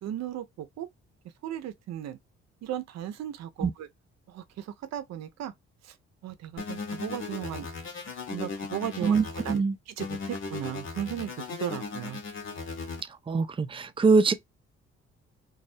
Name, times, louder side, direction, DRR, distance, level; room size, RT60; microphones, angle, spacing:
voice 1, 0.0-0.9 1.4-2.2 2.6-3.9 4.3-5.5 5.8-5.9 6.2-7.7 8.3-12.2, right 11 dB, 60° right, 0.6 m, -36 dB
sound 1, 6.6-9.6 10.0-13.0, left 4 dB, 45° left, 0.9 m, -37 dB
voice 2, 9.0-9.7 13.3-14.3, right 4 dB, 20° right, 0.4 m, -23 dB
2.3 x 2.1 x 2.6 m
supercardioid pair, 60°, 29 cm